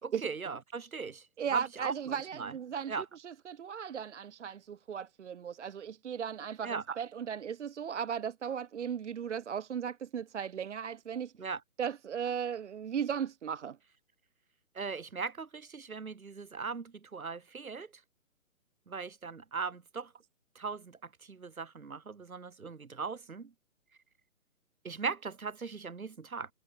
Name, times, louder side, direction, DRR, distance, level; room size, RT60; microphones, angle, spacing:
voice 1, 0.0-1.2 1.5-2.5 2.9-3.0 6.6-6.8 11.4-11.6 14.7-17.9 18.9-20.1 20.5-23.5 24.8-26.5, right 5 dB, 75° right, 3.2 m, -39 dB
voice 2, 1.4-11.3 11.8-13.8, right 7 dB, 55° right, 0.7 m, -36 dB
figure-of-eight pair, 145°, 43 cm